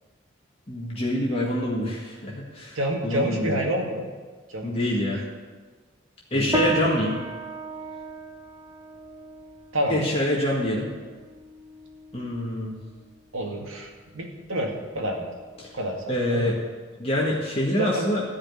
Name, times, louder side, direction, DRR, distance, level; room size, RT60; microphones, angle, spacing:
voice 1, 0.7-2.8 3.0-3.6 4.6-5.2 6.3-7.2 9.9-10.9 12.1-12.7 15.6-15.8 16.1-16.6 17.0-18.2, left 1 dB, 30° left, -4 dB, 1.8 m, -25 dB
voice 2, 2.8-4.1 4.5-4.7 6.3-6.9 9.7-10.1 13.3-15.3 15.7-16.5 17.8-18.1, equal, 85° right, 1 dB, 2.2 m, -28 dB
sound 1, 6.5-16.2, right 1 dB, 20° right, 0.7 m, -36 dB
14.5 x 5.2 x 9.5 m, 1.4 s
head